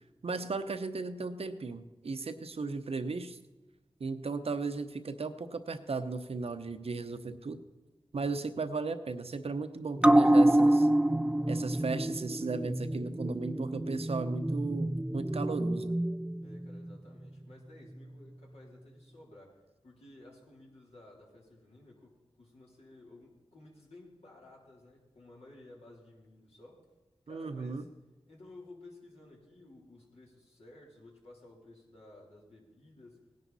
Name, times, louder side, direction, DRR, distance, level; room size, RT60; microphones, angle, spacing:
voice 1, 0.2-3.4 4.0-7.6 8.1-10.9 11.5-16.0 27.3-27.8, right 4 dB, 70° right, 9 dB, 0.9 m, -36 dB
sound 1, 10.0-16.9 17.2-17.3, right 1 dB, 10° right, 0.3 m, -27 dB
voice 2, 16.4-26.9 27.3-27.9 28.3-33.3, left 2 dB, 75° left, -3 dB, 3.5 m, -55 dB
17.5 x 10.5 x 4.1 m, 1.1 s
cardioid pair, 45°, 11 cm